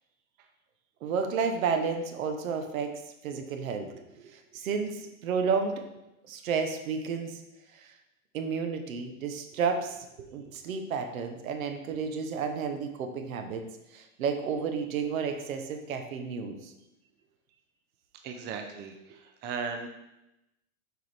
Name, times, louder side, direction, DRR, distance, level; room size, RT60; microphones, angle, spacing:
voice 1, 1.0-5.8 6.3-7.4 7.7-7.9 8.3-13.6 13.9-16.7, right 5 dB, 75° right, 6 dB, 1.0 m, -32 dB
voice 2, 18.2-19.9, right 5 dB, 25° right, 5 dB, 0.6 m, -37 dB
6.1 x 4.7 x 3.4 m, 0.91 s
hypercardioid pair, 120°, 42 cm